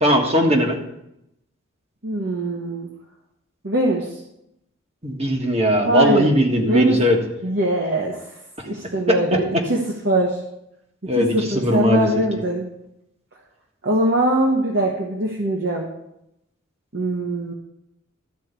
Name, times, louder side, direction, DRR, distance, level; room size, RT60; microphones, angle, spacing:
voice 1, 0.0-0.8 5.0-7.2 9.1-9.2 11.1-12.1, equal, 30° right, 2 dB, 1.6 m, -19 dB
voice 2, 2.0-2.9 3.6-4.1 5.8-6.3 6.7-7.0 7.4-8.2 8.6-9.4 9.7-10.4 11.0-12.7 13.8-15.9 16.9-17.5, right 1 dB, 55° right, -1 dB, 1.5 m, -22 dB
13.0 x 4.7 x 8.2 m, 0.82 s
head